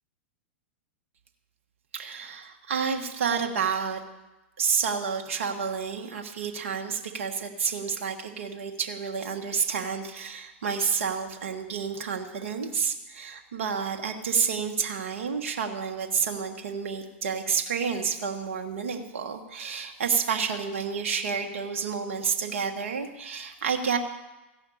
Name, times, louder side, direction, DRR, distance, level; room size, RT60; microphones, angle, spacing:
voice 1, 1.9-4.0 4.6-24.0, right 6 dB, 75° right, 3 dB, 1.5 m, -29 dB
15.0 x 5.7 x 8.5 m, 1.0 s
hypercardioid pair, 120°, 7 cm